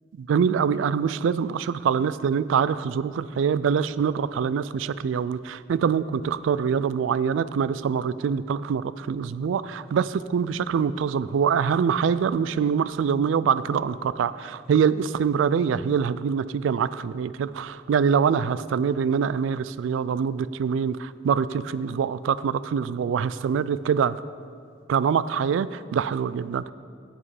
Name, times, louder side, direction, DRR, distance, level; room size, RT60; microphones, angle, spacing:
voice 1, 0.2-24.2 24.9-26.7, right 7 dB, 80° right, 16 dB, 0.3 m, -24 dB
9.6 x 7.9 x 4.8 m, 2.3 s
head